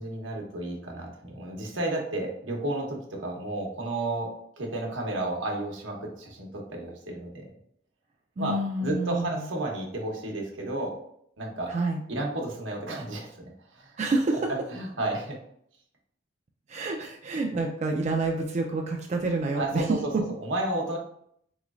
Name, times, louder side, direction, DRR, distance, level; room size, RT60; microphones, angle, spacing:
voice 1, 0.0-4.3 4.6-7.5 8.4-8.5 8.8-10.9 11.4-11.7 12.1-13.9 14.7-15.4 19.5-20.0 20.4-21.0, right 2 dB, 85° right, 0 dB, 0.9 m, -32 dB
voice 2, 8.4-9.4 11.7-12.0 14.0-14.5 16.7-20.2, right 2 dB, 35° right, 1 dB, 0.3 m, -28 dB
3.9 x 3.0 x 2.4 m, 0.69 s
head